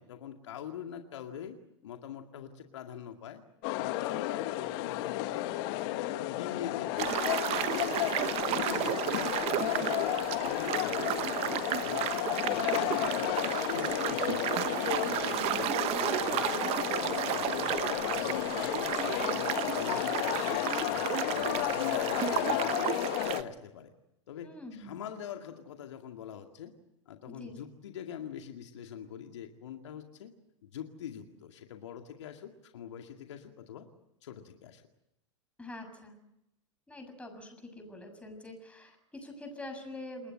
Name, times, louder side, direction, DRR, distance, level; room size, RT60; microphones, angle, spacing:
voice 1, 0.0-1.6 1.8-3.4 3.8-5.5 5.8-7.2 7.7-12.2 12.5-22.9 23.2-23.9 24.3-26.7 27.1-30.3 30.6-33.9 34.2-34.8, left 9 dB, 70° left, 4 dB, 2.1 m, -44 dB
sound 1, 3.6-23.4, left 15 dB, 50° left, 1.5 m, -32 dB
sound 2, 7.0-23.4, right 15 dB, 40° right, 1.1 m, -33 dB
voice 2, 17.7-18.1 24.4-25.0 27.3-27.6 35.6-36.2 36.9-40.3, left 2 dB, 10° left, 5 dB, 6.9 m, -45 dB
29.0 x 20.5 x 7.8 m, 0.85 s
hypercardioid pair, 95°, 16 cm